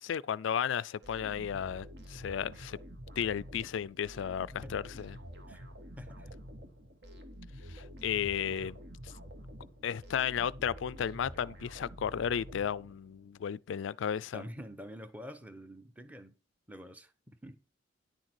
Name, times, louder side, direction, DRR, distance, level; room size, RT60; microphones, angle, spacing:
voice 1, 0.0-2.8 3.2-5.2 7.7-8.8 9.0-9.1 9.8-14.4, left 8 dB, 75° left, 0.3 m, -34 dB
sound 1, 1.0-13.2, equal, 60° right, 1.6 m, -48 dB
voice 2, 6.0-6.4 14.3-16.3 16.7-17.6, equal, 10° right, 0.9 m, -47 dB
10.0 x 6.4 x 4.5 m
head